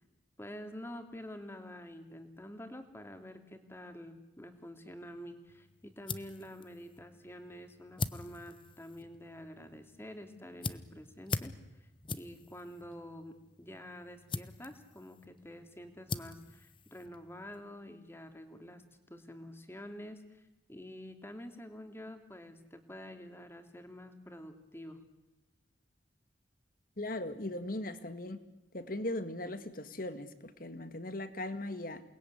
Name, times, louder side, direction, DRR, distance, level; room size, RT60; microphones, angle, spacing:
voice 1, 0.4-18.8 19.1-20.4 20.7-25.0, equal, 15° left, 6 dB, 2.8 m, -48 dB
sound 1, 5.5-17.6, left 3 dB, 30° left, 1.1 m, -44 dB
voice 2, 27.0-28.4 28.7-32.0, left 1 dB, 50° left, 11 dB, 2.0 m, -38 dB
28.5 x 20.5 x 9.7 m, 0.98 s
head